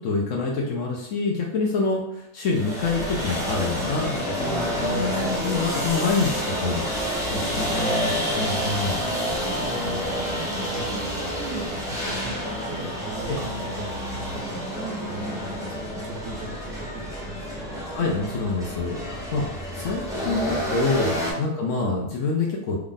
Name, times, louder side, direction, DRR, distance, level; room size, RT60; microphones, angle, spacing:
voice 1, 0.0-9.0 13.3-13.4 17.9-19.5 19.7-22.8, left 3 dB, 65° left, -1 dB, 0.8 m, -27 dB
sound 1, 2.4-21.3, equal, 5° right, 0.6 m, -29 dB
voice 2, 7.6-8.3 9.2-12.4 12.6-17.9 21.3-21.5, right 2 dB, 80° right, 0 dB, 1.2 m, -38 dB
3.5 x 2.4 x 3.6 m, 0.79 s
omnidirectional pair, 1.7 m